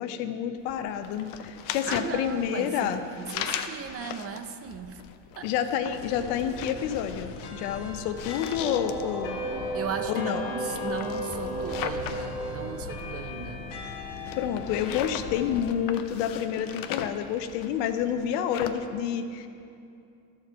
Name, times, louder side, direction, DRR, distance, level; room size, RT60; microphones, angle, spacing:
voice 1, 0.0-3.0 5.4-9.4 10.1-10.5 14.4-19.5, left 9 dB, 80° left, 9 dB, 0.8 m, -29 dB
sound 1, 0.6-18.7, left 9 dB, 45° left, 0.6 m, -39 dB
voice 2, 1.9-5.0 5.4-5.5 9.7-13.7, right 6 dB, 30° right, 8 dB, 0.5 m, -37 dB
sound 2, 5.9-15.7, left 4 dB, 60° left, 1.6 m, -40 dB
sound 3, 8.6-14.3, right 1 dB, 5° right, 1.1 m, -35 dB
12.5 x 4.5 x 6.7 m, 2.5 s
supercardioid pair, 110°, 47 cm